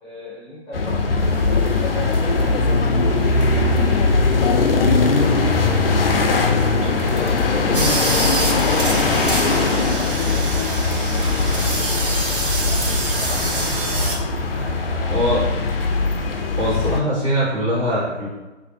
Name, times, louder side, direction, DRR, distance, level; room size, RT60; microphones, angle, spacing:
voice 1, 0.0-5.1 5.4-6.4 7.1-12.1 12.6-15.3, equal, 20° left, -8 dB, 0.9 m, -38 dB
sound 1, 0.7-17.0, left 3 dB, 55° left, 0.4 m, -20 dB
sound 2, 1.2-14.0, right 1 dB, 65° right, 1.0 m, -38 dB
voice 2, 7.6-7.9 15.1-15.4 16.6-18.3, equal, 30° right, -9 dB, 1.2 m, -22 dB
sound 3, 7.7-14.2, right 2 dB, 50° right, 0.7 m, -26 dB
4.0 x 2.4 x 2.7 m, 1.1 s
figure-of-eight pair, 145°, 36 cm